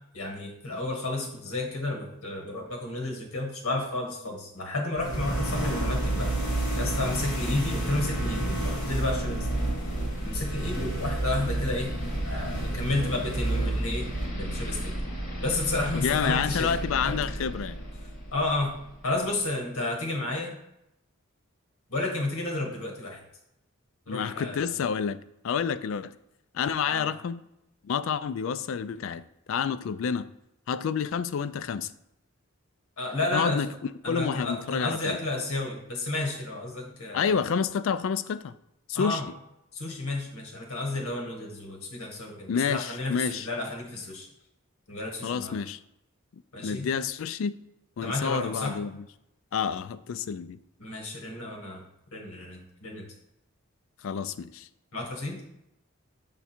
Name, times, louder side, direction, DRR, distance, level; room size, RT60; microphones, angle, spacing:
voice 1, 0.1-6.3 6.8-9.6 10.2-11.9 12.2-14.1 14.3-14.9 15.4-16.7 17.0-17.2 18.3-18.8 19.0-20.6 21.9-23.2 24.1-24.7 26.8-27.1 33.0-33.6 34.0-37.4 38.9-39.2 39.7-44.3 44.9-45.6 46.5-46.9 48.0-48.8 50.8-51.8 52.1-53.1 54.9-55.4, left 2 dB, 80° left, 1.5 m, -31 dB
sound 1, 4.9-18.8, right 1 dB, 35° left, 1.9 m, -30 dB
voice 2, 15.9-17.8 24.1-25.2 25.4-26.1 26.5-27.5 27.8-30.3 30.7-31.9 33.3-33.7 34.1-35.2 37.1-38.5 38.9-39.2 42.5-43.5 45.2-45.8 46.3-47.6 48.0-49.0 49.5-50.6 54.0-54.7, left 6 dB, 65° left, 0.3 m, -29 dB
7.0 x 3.7 x 4.3 m
head